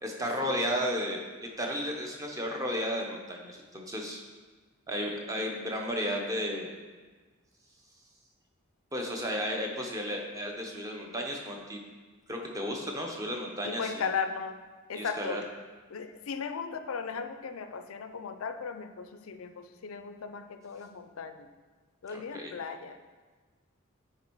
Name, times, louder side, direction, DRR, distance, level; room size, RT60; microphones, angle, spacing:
voice 1, 0.0-4.2 4.9-6.7 8.9-11.8 12.3-14.0 14.9-15.4 22.1-22.5, equal, 15° right, 1 dB, 0.7 m, -33 dB
voice 2, 13.6-14.6 14.9-15.4 15.9-21.5 22.0-23.0, left 5 dB, 75° left, 9 dB, 0.5 m, -36 dB
9.6 x 3.4 x 4.5 m, 1.4 s
head